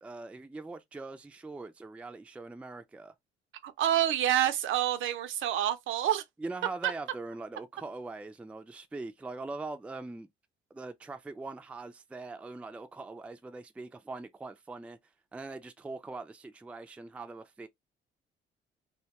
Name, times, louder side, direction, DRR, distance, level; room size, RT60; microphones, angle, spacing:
voice 1, 0.0-3.1 6.4-10.3 10.7-15.0 15.3-17.7, right 3 dB, 5° right, 0.3 m, -42 dB
voice 2, 3.6-6.2, right 11 dB, 80° right, 0.5 m, -28 dB
2.2 x 2.2 x 2.8 m
cardioid pair, 90°, 20 cm